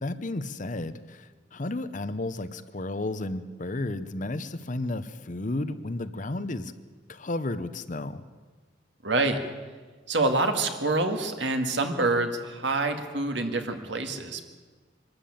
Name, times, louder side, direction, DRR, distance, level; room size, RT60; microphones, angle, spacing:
voice 1, 0.0-6.7 7.1-8.2, left 2 dB, 40° left, 12 dB, 0.8 m, -33 dB
voice 2, 9.0-9.4 10.1-14.5, right 2 dB, 65° right, 6 dB, 2.1 m, -26 dB
23.5 x 13.0 x 8.7 m, 1.4 s
head